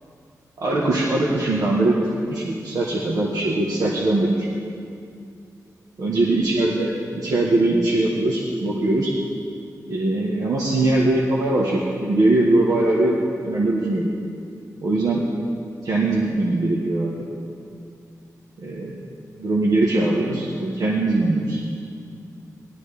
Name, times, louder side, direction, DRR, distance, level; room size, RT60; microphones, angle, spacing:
voice 1, 0.6-4.5 6.0-9.1 9.9-14.1 14.8-15.2 15.8-17.1 18.6-19.0 19.4-21.6, right 2 dB, 75° right, -4 dB, 1.3 m, -21 dB
17.5 x 11.5 x 3.4 m, 2.4 s
wide cardioid pair, 100°, 6 cm